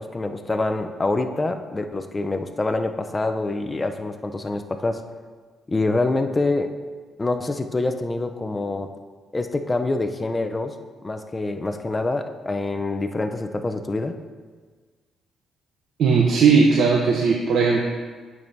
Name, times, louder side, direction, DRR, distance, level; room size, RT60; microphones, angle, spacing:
voice 1, 0.0-5.0 5.7-6.7 7.2-8.9 9.3-10.8 11.0-14.1, left 2 dB, 20° left, 6 dB, 0.5 m, -26 dB
voice 2, 16.0-17.9, right 5 dB, 70° right, 0 dB, 0.7 m, -17 dB
9.0 x 6.1 x 2.7 m, 1.5 s
cardioid pair, 90°, 0 cm